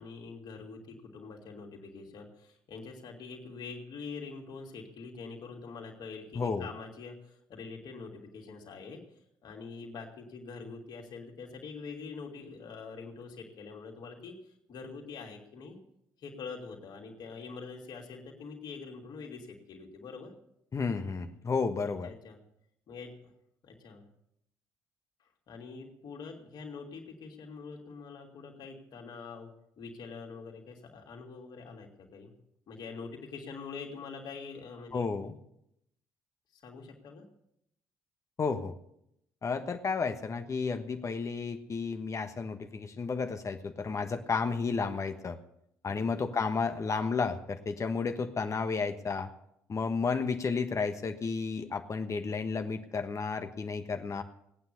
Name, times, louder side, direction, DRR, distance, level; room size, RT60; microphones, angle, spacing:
voice 1, 0.0-9.0 9.4-14.3 14.7-15.8 16.2-20.3 21.8-22.4 22.9-23.3 23.6-24.1 25.5-32.3 32.7-35.0 36.6-37.2 45.9-46.0, left 4 dB, 55° left, 0 dB, 3.0 m, -45 dB
voice 2, 6.3-6.7 20.7-22.1 34.9-35.4 38.4-38.7 39.4-45.4 45.8-49.3 49.7-54.2, left 4 dB, 35° left, 7 dB, 1.3 m, -32 dB
18.5 x 9.4 x 7.0 m, 0.78 s
figure-of-eight pair, 45°, 9 cm